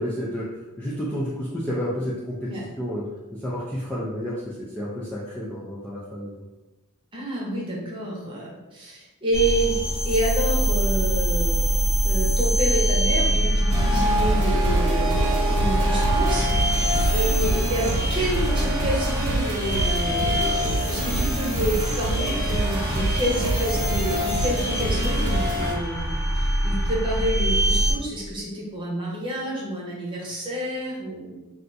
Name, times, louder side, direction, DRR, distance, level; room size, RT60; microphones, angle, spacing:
voice 1, 0.0-2.5 2.8-6.4, equal, 5° left, -8 dB, 0.3 m, -31 dB
voice 2, 7.1-11.6 12.0-16.8 17.1-31.5, equal, 25° right, -4 dB, 0.8 m, -29 dB
sound 1, 9.3-27.9, equal, 30° left, 1.0 m, -24 dB
sound 2, 13.7-25.7, right 1 dB, 80° right, 0.9 m, -27 dB
2.5 x 2.3 x 3.9 m, 1.1 s
head